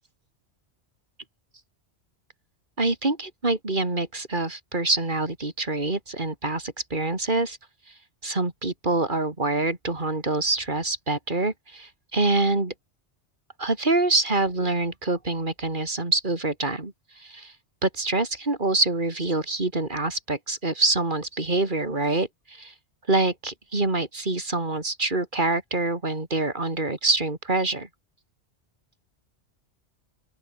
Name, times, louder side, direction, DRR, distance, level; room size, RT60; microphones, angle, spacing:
voice 1, 2.8-7.6 8.2-12.7 13.6-17.5 17.8-22.7 23.1-27.9, right 2 dB, 45° right, 3.7 m, -26 dB
open air
omnidirectional pair, 1.2 m